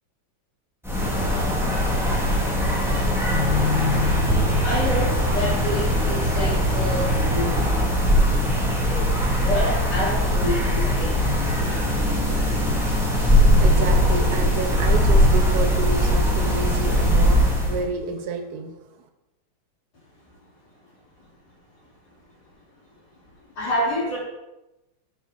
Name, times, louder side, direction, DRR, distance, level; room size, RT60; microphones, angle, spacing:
sound 1, 0.8-17.8, equal, ahead, 1.9 m, -20 dB
voice 1, 4.3-7.7 9.3-12.2 21.2-21.3 22.1-22.2 23.5-24.2, left 1 dB, 50° left, -7 dB, 4.4 m, -29 dB
voice 2, 13.2-18.7, right 4 dB, 55° right, 6 dB, 1.3 m, -30 dB
10.5 x 7.3 x 3.9 m, 0.98 s
omnidirectional pair, 2.2 m